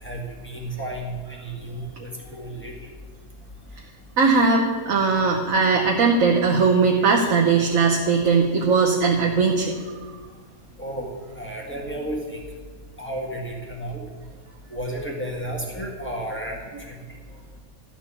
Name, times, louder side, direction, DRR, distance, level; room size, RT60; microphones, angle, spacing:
voice 1, 0.0-2.7 10.8-11.1 11.4-12.4 13.0-14.0 14.7-16.6, right 1 dB, 10° left, -3 dB, 1.8 m, -32 dB
voice 2, 4.2-9.8, right 4 dB, 70° right, 0 dB, 1.3 m, -19 dB
12.5 x 4.5 x 8.5 m, 1.5 s
omnidirectional pair, 1.5 m